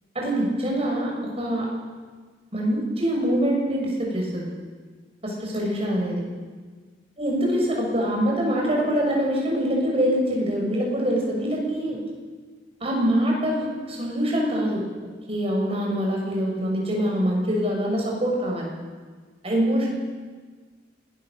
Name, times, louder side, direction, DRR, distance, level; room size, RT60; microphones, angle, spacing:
voice 1, 0.1-1.7 2.5-4.5 5.2-6.2 7.2-12.0 12.8-14.8 15.3-18.7 19.4-20.0, equal, 30° right, -1 dB, 6.7 m, -24 dB
26.5 x 20.0 x 6.8 m, 1.5 s
head